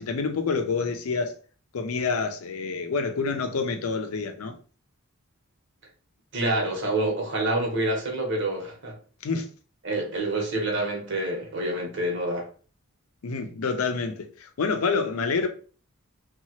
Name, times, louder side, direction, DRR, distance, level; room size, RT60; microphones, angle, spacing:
voice 1, 0.0-1.4 1.7-4.6 9.2-9.5 13.2-15.5, left 4 dB, 90° left, 0.5 m, -27 dB
voice 2, 6.3-8.9 9.8-12.5, right 1 dB, 55° right, 1.0 m, -27 dB
2.8 x 2.3 x 2.9 m
head